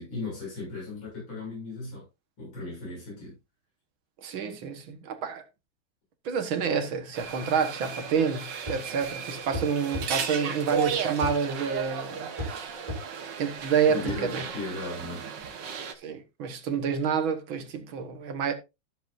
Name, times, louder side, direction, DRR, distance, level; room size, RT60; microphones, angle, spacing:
voice 1, 0.0-2.0 2.4-3.3 13.9-15.2, left 3 dB, 80° left, 7.7 m, -37 dB
voice 2, 4.2-5.4 6.3-12.9 13.4-14.4 16.0-18.5, right 6 dB, 85° right, 2.2 m, -28 dB
sound 1, 7.1-15.9, right 6 dB, 65° right, 1.9 m, -35 dB
sound 2, 8.7-8.9 9.5-10.1 11.2-11.4 12.4-12.6 12.9-13.0 14.1-14.2, left 1 dB, 15° right, 3.5 m, -33 dB
14.0 x 7.8 x 2.6 m
omnidirectional pair, 2.1 m